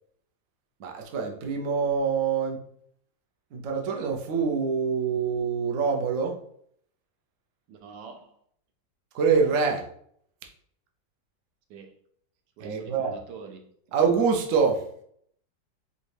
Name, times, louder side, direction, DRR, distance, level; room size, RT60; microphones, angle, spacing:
voice 1, 0.8-2.6 3.5-6.4 9.1-9.8 12.6-13.2 13.9-14.8, right 5 dB, 60° right, 0.9 m, -25 dB
voice 2, 7.7-8.4 11.7-12.0 12.6-13.7, right 5 dB, 75° right, 1.2 m, -44 dB
5.0 x 2.3 x 3.2 m
omnidirectional pair, 1.9 m